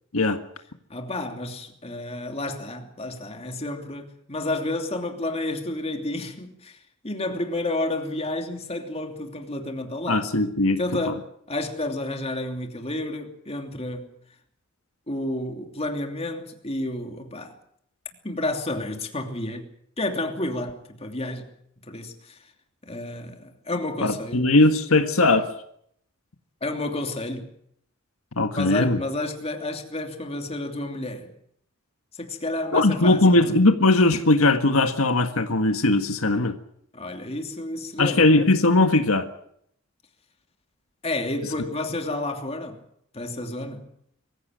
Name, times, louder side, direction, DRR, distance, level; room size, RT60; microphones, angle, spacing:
voice 1, 0.9-10.3 10.8-14.1 15.1-17.6 18.2-19.7 20.0-21.5 21.8-22.4 22.8-24.5 26.6-27.5 28.5-31.3 32.1-33.6 36.9-38.3 41.0-42.8 43.1-43.9, left 2 dB, 30° left, 2.9 m, -31 dB
voice 2, 10.1-10.8 24.0-25.5 28.4-29.0 32.7-36.6 38.0-39.3, left 2 dB, 85° left, 1.7 m, -19 dB
23.5 x 15.5 x 9.0 m
head